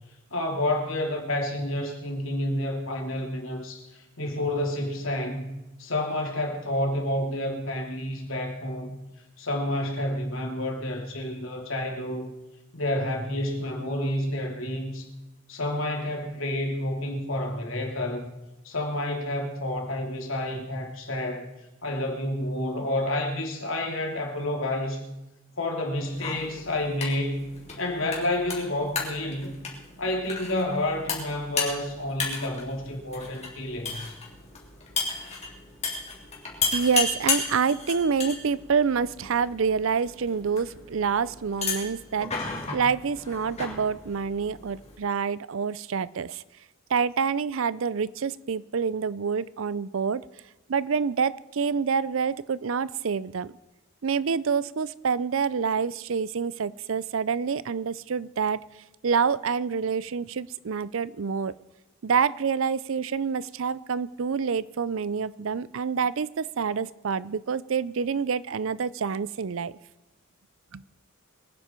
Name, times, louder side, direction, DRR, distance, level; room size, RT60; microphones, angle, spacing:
voice 1, 0.3-3.9 4.2-5.5 5.8-9.0 9.4-12.3 12.7-15.1 15.5-18.4 18.6-21.5 21.8-25.0 25.6-27.5 27.8-29.5 30.0-34.1, left 1 dB, 70° left, 2 dB, 3.0 m, -29 dB
sound 1, 26.1-45.0, left 4 dB, 30° left, 3.4 m, -34 dB
voice 2, 36.7-46.4 46.9-50.2 50.7-53.5 54.0-58.6 59.0-61.5 62.0-69.7 70.7-70.8, right 6 dB, 70° right, 19 dB, 0.5 m, -27 dB
23.5 x 10.0 x 4.5 m, 1.0 s
head